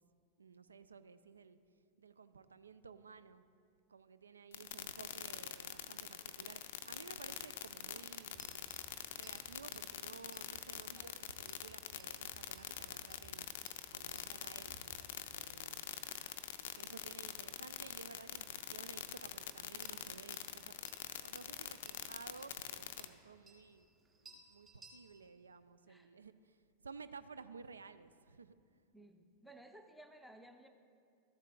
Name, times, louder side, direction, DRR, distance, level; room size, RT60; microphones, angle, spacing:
voice 1, 0.4-1.6 2.0-3.4 3.9-8.7 9.2-13.5 13.9-15.8 16.7-20.7 21.2-23.9 24.2-28.6, right 5 dB, 75° right, 14 dB, 0.3 m, -55 dB
sound 1, 4.5-23.1, left 11 dB, 55° left, 0.4 m, -44 dB
sound 2, 8.3-25.3, right 2 dB, 20° right, 2.0 m, -64 dB
voice 2, 28.9-30.7, right 1 dB, ahead, 5 dB, 0.6 m, -58 dB
13.5 x 7.3 x 2.3 m, 2.3 s
figure-of-eight pair, 90°, 0 cm